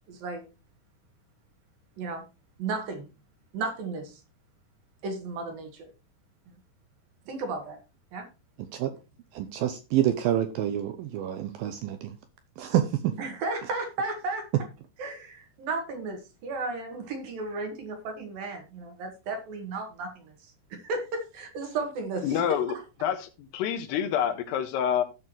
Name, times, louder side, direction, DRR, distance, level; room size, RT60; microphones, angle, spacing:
voice 1, 0.1-0.5 2.0-2.3 2.6-3.1 3.5-4.2 5.0-5.9 7.3-7.8 8.1-8.3 13.2-14.5 15.0-22.8, right 3 dB, 65° right, 3.3 m, -34 dB
voice 2, 9.3-12.1 12.6-13.1, right 11 dB, 80° right, 2.2 m, -27 dB
voice 3, 22.2-22.7 23.0-25.0, left 9 dB, 80° left, 3.1 m, -27 dB
16.0 x 6.0 x 3.1 m
omnidirectional pair, 4.8 m